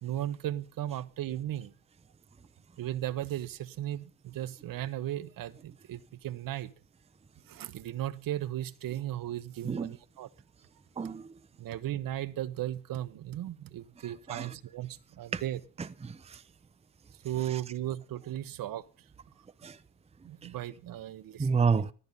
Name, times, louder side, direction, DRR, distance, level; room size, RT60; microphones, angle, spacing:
voice 1, 0.0-1.7 2.8-6.7 7.5-10.3 11.6-15.6 17.2-18.9 20.2-21.7, right 13 dB, 60° right, 1.1 m, -36 dB
voice 2, 9.6-10.0 11.0-11.3 14.3-14.5 15.3-15.4 15.8-16.4 17.5-17.6 19.6-19.8 20.4-20.5 21.4-21.9, right 5 dB, 15° right, 0.7 m, -30 dB
14.5 x 13.5 x 5.4 m
supercardioid pair, 85°, 39 cm